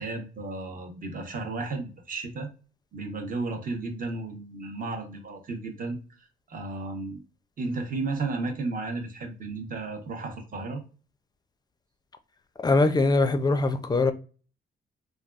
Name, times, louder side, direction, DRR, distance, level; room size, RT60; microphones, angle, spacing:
voice 1, 0.0-2.5 2.9-7.2 7.6-10.8, right 3 dB, 45° right, 0.9 m, -33 dB
voice 2, 12.6-14.1, left 3 dB, 20° left, 0.4 m, -22 dB
3.3 x 2.3 x 2.4 m
cardioid pair, 90°, 20 cm